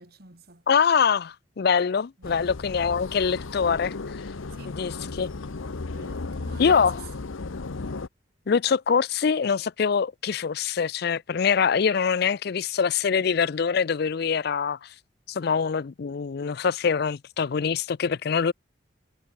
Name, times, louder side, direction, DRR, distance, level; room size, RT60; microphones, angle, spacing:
voice 1, 0.0-0.6 2.2-2.6 4.5-4.8 5.9-7.3, right 3 dB, 50° right, 3.1 m, -47 dB
voice 2, 0.7-4.2 4.6-5.3 6.6-7.0 8.5-14.9 15.3-18.5, left 6 dB, 50° left, 0.4 m, -24 dB
sound 1, 2.2-8.1, left 3 dB, 80° left, 0.8 m, -35 dB
head